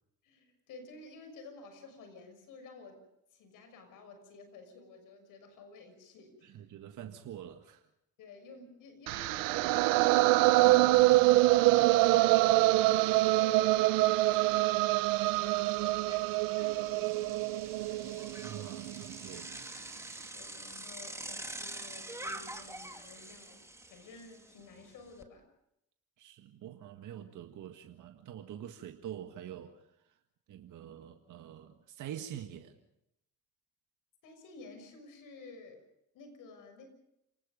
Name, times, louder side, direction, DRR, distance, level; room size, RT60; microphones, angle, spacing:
voice 1, 0.2-3.0 3.3-6.6 8.2-10.8 11.3-13.9 14.3-18.4 20.3-25.4 34.2-35.8 36.1-36.9, left 3 dB, 80° left, 7 dB, 6.3 m, -52 dB
voice 2, 6.4-7.8 18.4-19.7 26.2-30.1 30.5-32.8, right 10 dB, 70° right, 5 dB, 1.8 m, -46 dB
sound 1, 9.1-19.1, right 19 dB, 90° right, 0.7 m, -25 dB
Bicycle, 11.0-11.1 11.5-25.2, right 1 dB, 10° right, 2.4 m, -47 dB
29.0 x 19.0 x 5.3 m, 0.80 s
supercardioid pair, 65°, 32 cm